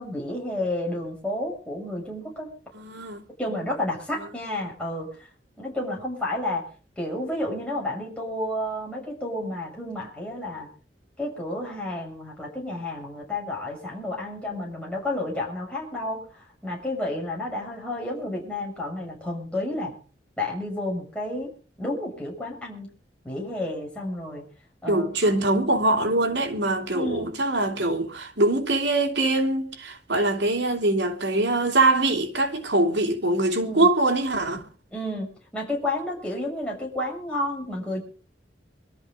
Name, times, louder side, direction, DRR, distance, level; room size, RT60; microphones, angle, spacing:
voice 1, 0.0-2.5 3.4-5.3 5.6-6.6 7.0-10.7 11.2-16.2 16.6-19.9 20.4-21.5 21.8-22.9 23.2-24.4 24.8-25.1 26.9-27.3 33.6-33.9 34.9-38.0, left 1 dB, 5° left, 6.9 m, -31 dB
voice 2, 2.7-3.2 24.9-34.6, right 2 dB, 85° right, 3.3 m, -23 dB
24.0 x 13.5 x 3.9 m
head